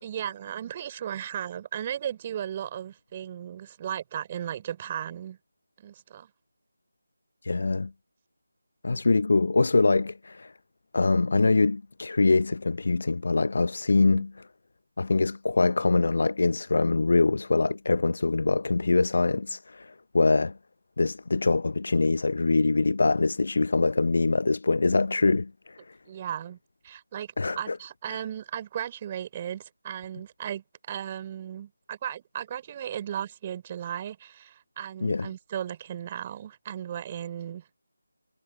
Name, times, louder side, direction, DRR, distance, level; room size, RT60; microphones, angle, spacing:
voice 1, 0.0-5.4 5.8-6.3 14.0-14.3 26.1-26.6 26.8-37.7, right 10 dB, 20° right, 3.9 m, -36 dB
voice 2, 7.4-7.9 8.8-10.5 10.9-14.5 15.0-20.6 21.0-25.9 27.4-27.8 28.1-28.2 35.0-35.3, left 3 dB, 55° left, 0.7 m, -24 dB
figure-of-eight pair, 160°, 0 cm